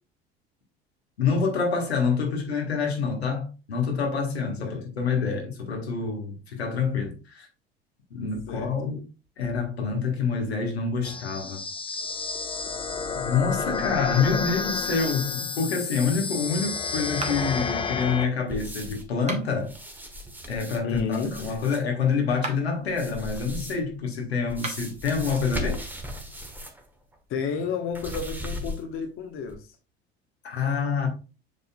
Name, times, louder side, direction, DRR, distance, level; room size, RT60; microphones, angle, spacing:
voice 1, 1.2-7.5 8.1-9.0 9.4-11.6 13.1-19.7 20.5-25.8 30.4-31.1, left 5 dB, 80° left, 1.7 m, -27 dB
sound 1, 11.0-18.3, left 5 dB, 15° left, 0.6 m, -30 dB
sound 2, 17.2-17.7 19.1-19.7 22.3-22.8 24.5-25.0, right 3 dB, 20° right, 1.6 m, -36 dB
sound 3, 18.5-19.1 19.6-21.8 22.9-23.9 24.5-26.9 27.1-27.2 27.9-29.0 29.5-29.6, left 1 dB, 5° right, 1.4 m, -37 dB
voice 2, 20.8-21.6 27.3-29.7, left 6 dB, 40° left, 1.3 m, -31 dB
7.5 x 5.6 x 2.4 m
figure-of-eight pair, 70°, 32 cm